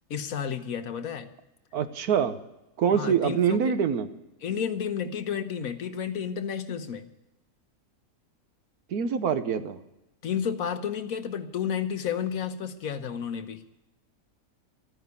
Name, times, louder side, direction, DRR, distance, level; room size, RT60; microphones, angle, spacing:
voice 1, 0.1-1.3 2.9-3.8 4.4-7.1 10.2-13.6, left 8 dB, 70° left, 9 dB, 1.4 m, -31 dB
voice 2, 1.7-2.4 2.8-4.1 8.9-9.8, right 7 dB, 85° right, 10 dB, 1.5 m, -25 dB
13.0 x 9.6 x 8.3 m, 0.92 s
omnidirectional pair, 1.6 m